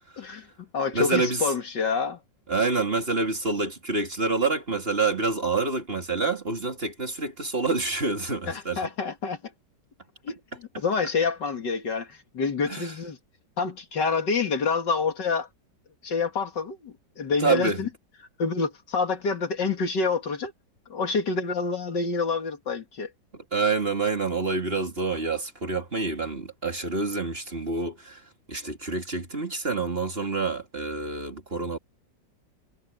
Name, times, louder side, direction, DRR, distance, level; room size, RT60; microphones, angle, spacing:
voice 1, 0.2-2.2 8.5-9.4 10.2-13.2 13.6-15.5 16.0-17.9 18.4-20.5 20.9-23.1, left 4 dB, 70° left, 2.8 m, -27 dB
voice 2, 0.9-1.4 2.5-8.9 12.7-12.9 17.4-17.8 23.5-28.2 28.5-31.8, right 3 dB, 30° right, 3.0 m, -27 dB
omnidirectional pair, 1.9 m